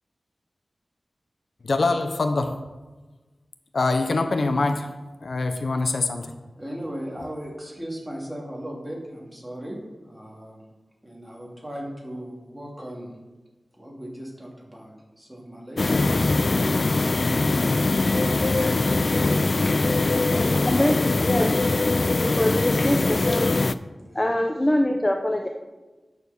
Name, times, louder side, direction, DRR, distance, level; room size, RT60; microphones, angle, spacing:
voice 1, 1.6-2.5 3.7-4.9 5.2-6.3, left 3 dB, 70° left, 7 dB, 0.9 m, -24 dB
voice 2, 6.6-10.6 11.0-13.1 13.8-16.0 16.7-19.4 19.9-21.5 24.0-24.2, equal, 5° right, -2 dB, 2.6 m, -38 dB
sound 1, 15.8-23.7, left 3 dB, 50° left, 0.4 m, -22 dB
voice 3, 22.2-23.5 24.1-25.5, left 1 dB, 20° left, 3 dB, 0.8 m, -23 dB
9.5 x 6.8 x 6.8 m, 1.2 s
wide cardioid pair, 100°, 0 cm